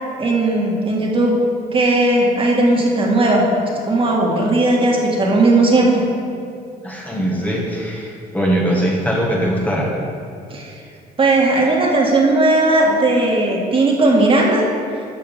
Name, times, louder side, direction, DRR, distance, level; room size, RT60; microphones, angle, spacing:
voice 1, 0.2-1.4 1.7-3.5 3.9-6.0 10.5-10.8 11.2-14.7, right 2 dB, 30° right, -2 dB, 2.2 m, -16 dB
voice 2, 6.8-9.9, right 1 dB, 10° left, -3 dB, 1.7 m, -21 dB
13.0 x 6.9 x 5.3 m, 2.4 s
cardioid pair, 110°, 17 cm